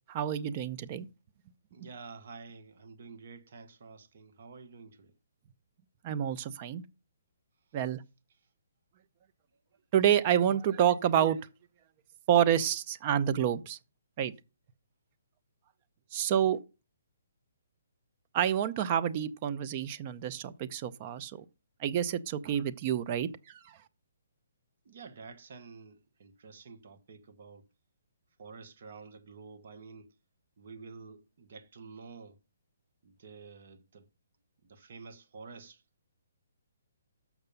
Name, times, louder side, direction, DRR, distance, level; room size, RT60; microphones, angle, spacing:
voice 1, 0.1-1.1 6.0-6.8 7.7-8.0 9.9-11.4 12.3-13.8 14.2-14.3 16.1-16.6 18.3-21.4 21.8-23.8, right 10 dB, 35° right, 0.6 m, -28 dB
voice 2, 1.7-5.1 24.8-27.7 28.4-30.1 30.6-32.4 33.0-34.1 34.6-35.8, right 4 dB, 55° right, 1.2 m, -49 dB
6.6 x 6.0 x 5.3 m
hypercardioid pair, 145°, 0 cm